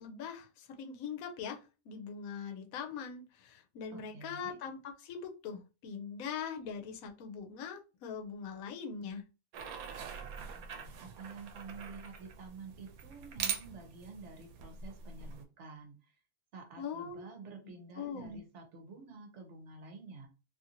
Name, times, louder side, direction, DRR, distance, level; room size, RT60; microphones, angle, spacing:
voice 1, 0.0-1.6 1.9-9.2 16.8-17.2 18.0-18.4, left 6 dB, 90° left, 4 dB, 1.0 m, -42 dB
voice 2, 3.9-4.6 10.5-16.1 16.5-20.3, right 4 dB, 65° right, 3 dB, 1.0 m, -50 dB
sound 1, 9.5-15.4, right 7 dB, 90° right, 1.0 m, -43 dB
2.7 x 2.5 x 2.8 m, 0.31 s
omnidirectional pair, 1.5 m